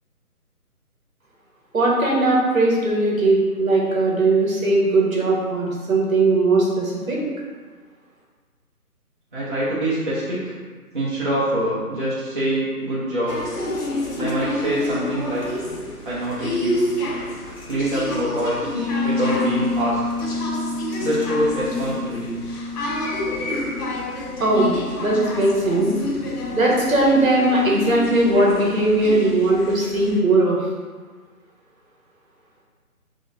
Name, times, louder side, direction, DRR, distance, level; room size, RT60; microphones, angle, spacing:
voice 1, 1.7-7.2 24.4-24.7 25.0-25.9 26.5-30.6, right 2 dB, 65° right, -4 dB, 1.3 m, -19 dB
voice 2, 9.3-10.4 10.9-13.4 14.2-15.6 16.0-16.9 17.7-18.7 19.0-20.0 21.0-22.4, equal, 35° right, -9 dB, 0.6 m, -24 dB
sound 1, 13.3-30.2, left 1 dB, 90° left, 1.0 m, -29 dB
sound 2, 18.7-24.3, left 3 dB, 30° left, 1.0 m, -28 dB
3.6 x 2.7 x 3.4 m, 1.5 s
figure-of-eight pair, 160°, 45 cm